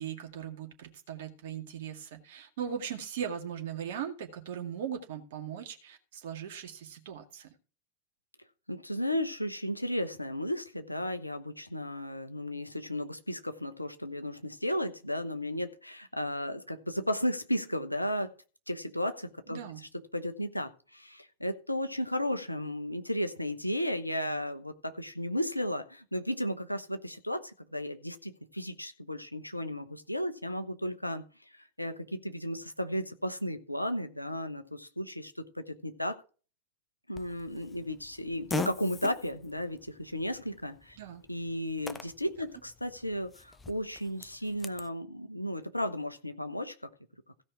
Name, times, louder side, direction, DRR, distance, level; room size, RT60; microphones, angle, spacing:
voice 1, 0.0-7.5 19.5-19.8 41.0-41.2, right 8 dB, 55° right, 3 dB, 2.1 m, -39 dB
voice 2, 8.7-18.3 18.7-19.6 20.1-31.2 31.5-36.2 37.1-41.0 41.3-46.7, equal, 85° left, 8 dB, 1.0 m, -34 dB
Fart, 37.1-44.9, left 3 dB, 15° left, 0.8 m, -42 dB
16.0 x 5.5 x 4.7 m, 0.37 s
figure-of-eight pair, 90°, 0 cm